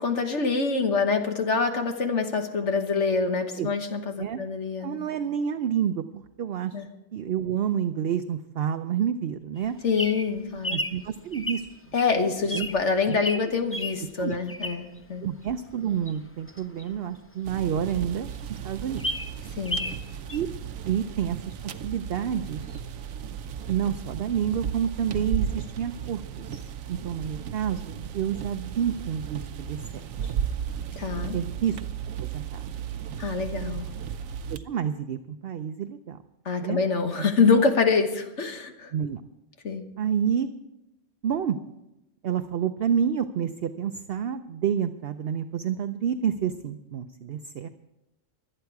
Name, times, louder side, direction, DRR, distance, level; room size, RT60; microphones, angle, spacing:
voice 1, 0.0-5.0 6.7-6.9 9.8-10.8 11.9-15.2 19.5-19.9 31.0-31.4 33.2-33.9 36.4-38.9 39.6-39.9, left 4 dB, 65° left, 6 dB, 1.6 m, -25 dB
voice 2, 4.8-6.0 6.4-6.8 7.1-9.7 10.7-11.7 12.5-12.7 13.1-13.5 14.2-14.4 15.2-18.3 18.6-19.0 20.3-20.5 20.9-21.6 21.8-22.8 23.7-26.6 26.9-30.3 31.3-31.8 32.2-32.7 34.5-36.2 36.6-36.8 37.2-37.3 37.6-37.7 38.9-39.2 40.0-40.5 41.2-41.6 42.2-47.7, right 8 dB, 60° right, 9 dB, 0.7 m, -29 dB
Bird vocalization bird call bird song, 9.6-15.0 15.5-17.6 18.0-18.1 18.3-18.4 18.8-20.0 20.3-20.4, left 1 dB, 15° left, 0.6 m, -33 dB
sound 1, 17.4-34.6, right 8 dB, 80° right, 1.1 m, -35 dB
23.0 x 8.9 x 4.7 m, 0.90 s
omnidirectional pair, 1.3 m